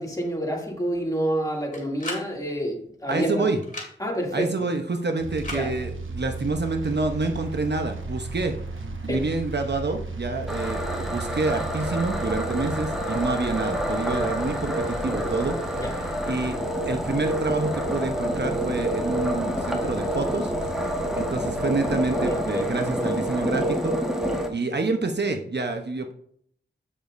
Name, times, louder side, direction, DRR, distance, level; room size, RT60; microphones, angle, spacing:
voice 1, 0.0-3.5 4.0-4.5 5.5-5.7 9.1-9.2 15.8-15.9 22.3-22.6, equal, 15° left, -1 dB, 2.5 m, -28 dB
sound 1, 1.7-2.3 3.6-3.9 5.4-5.6, left 2 dB, 40° left, 2.7 m, -34 dB
voice 2, 3.1-3.6 4.3-16.6 16.9-23.9 24.2-26.1, right 3 dB, 55° right, 5 dB, 0.9 m, -28 dB
sound 2, 5.2-22.5, right 2 dB, 80° right, 1.1 m, -36 dB
sound 3, 10.5-24.5, equal, ahead, 1.4 m, -28 dB
8.5 x 7.2 x 2.6 m, 0.63 s
wide cardioid pair, 55°, 20 cm